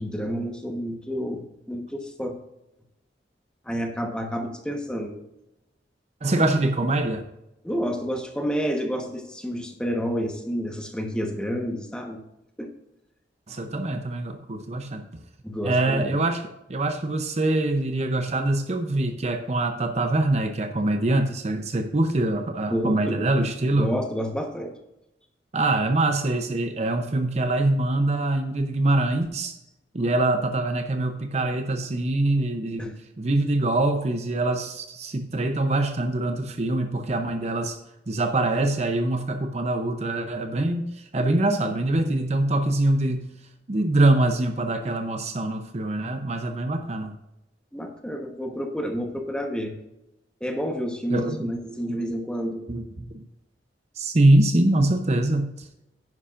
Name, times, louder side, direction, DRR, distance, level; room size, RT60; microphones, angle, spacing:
voice 1, 0.0-2.4 3.7-5.2 7.6-12.2 12.6-12.7 15.4-16.2 22.7-23.2 23.7-24.7 32.8-32.9 47.7-49.7 50.4-52.6, equal, 5° left, 3 dB, 1.2 m, -29 dB
voice 2, 6.2-7.3 13.5-15.2 15.6-16.4 16.7-23.9 25.5-29.6 29.9-37.8 38.1-43.3 43.7-47.2 51.1-51.6 51.9-52.0 52.7-53.2 54.0-55.7, right 2 dB, 40° right, 7 dB, 0.7 m, -24 dB
10.5 x 10.0 x 2.5 m, 0.90 s
head